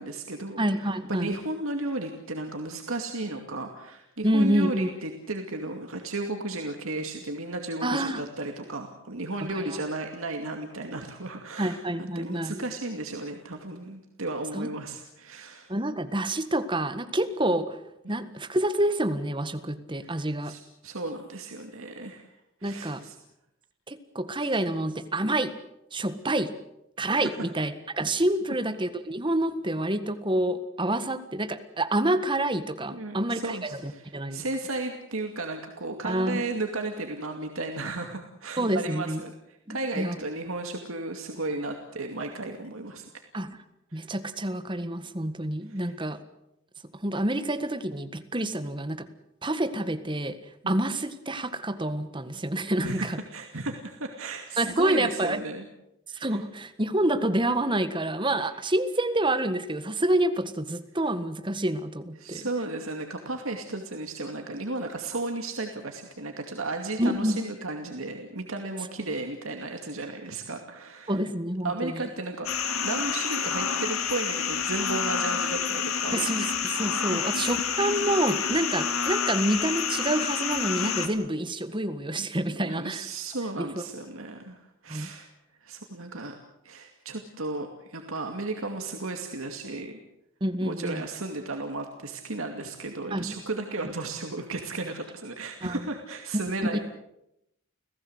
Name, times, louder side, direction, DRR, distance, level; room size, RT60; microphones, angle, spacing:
voice 1, 0.0-15.7 20.0-22.3 22.6-23.1 32.9-39.3 39.7-43.0 43.9-44.0 45.7-45.9 52.8-55.6 56.1-56.4 62.2-71.2 71.6-76.2 77.1-77.2 82.6-84.6 84.8-85.3 85.6-86.3 86.6-90.0 90.6-96.8, right 2 dB, 80° right, 4 dB, 2.5 m, -34 dB
voice 2, 0.6-1.4 4.2-4.9 7.8-8.2 9.5-9.8 11.6-12.6 14.5-14.7 15.7-17.8 18.1-20.6 22.6-23.0 23.9-25.6 25.9-26.6 27.0-34.4 36.0-36.4 38.6-39.2 39.7-40.2 43.3-43.6 43.9-46.2 47.0-49.1 49.4-50.4 50.7-53.2 54.6-55.4 56.2-62.5 67.0-67.4 71.1-72.0 76.1-83.1 83.6-83.8 84.9-85.1 90.4-91.0 93.1-93.3 95.6-95.8 96.6-96.8, right 1 dB, 25° right, 10 dB, 1.7 m, -28 dB
sound 1, 72.4-81.1, left 6 dB, 90° left, 3.0 m, -28 dB
30.0 x 16.5 x 8.1 m, 0.84 s
head